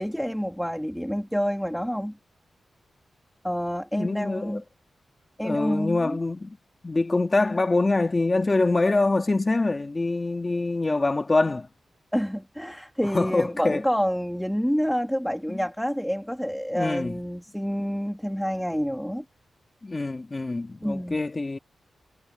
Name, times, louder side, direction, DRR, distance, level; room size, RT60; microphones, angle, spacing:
voice 1, 0.0-2.2 3.4-4.6 5.4-6.2 12.1-19.2 20.8-21.2, equal, ahead, 2.1 m, -28 dB
voice 2, 3.9-4.6 5.4-6.6 6.8-11.7 13.0-13.8 15.5-15.6 16.7-17.2 19.8-21.6, left 2 dB, 25° left, 2.1 m, -25 dB
wide cardioid pair, 160°, 0 cm